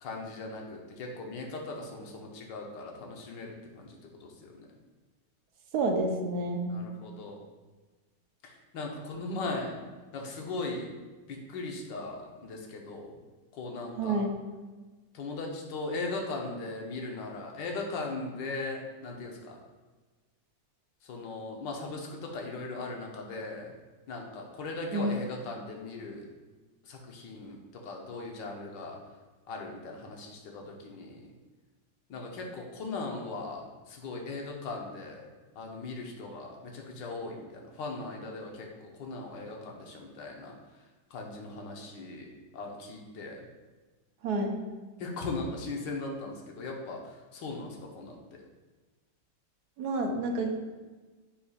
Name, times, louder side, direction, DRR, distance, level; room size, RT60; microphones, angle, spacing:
voice 1, 0.0-3.9 4.2-4.5 6.7-7.4 8.4-9.8 10.1-10.9 11.3-13.2 13.5-14.2 15.1-19.6 21.0-23.7 24.1-26.2 26.9-29.0 29.5-31.2 32.1-35.3 35.6-40.5 41.1-42.2 42.5-43.4 45.0-47.0 47.3-48.2, left 3 dB, 75° left, 0 dB, 1.6 m, -38 dB
voice 2, 5.7-6.7 14.0-14.3 24.9-25.2 44.2-44.6 49.8-50.5, right 2 dB, 65° right, 3 dB, 1.2 m, -29 dB
9.9 x 4.3 x 2.4 m, 1.3 s
omnidirectional pair, 2.0 m